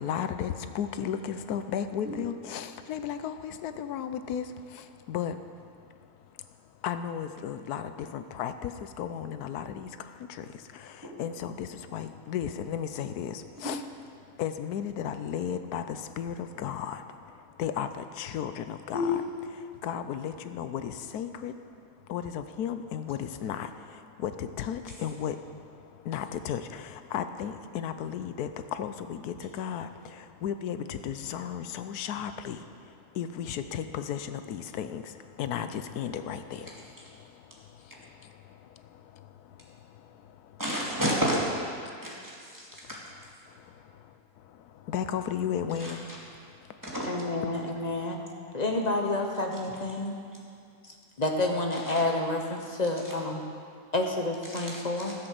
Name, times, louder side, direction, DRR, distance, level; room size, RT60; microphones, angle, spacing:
voice 1, 0.0-13.9 14.2-19.2 19.5-40.6 41.8-41.9 42.8-47.1 47.4-47.5, left 8 dB, 90° left, 10 dB, 1.2 m, -35 dB
voice 2, 40.6-41.4 42.0-42.2 42.5-43.0 45.8-45.9 46.9-47.1 54.5-54.8, equal, 10° right, -5 dB, 2.3 m, -29 dB
voice 3, 47.0-48.2 48.5-50.1 51.2-53.4 53.9-55.1, left 2 dB, 35° left, 2 dB, 0.9 m, -29 dB
13.0 x 7.9 x 6.6 m, 2.3 s
omnidirectional pair, 1.6 m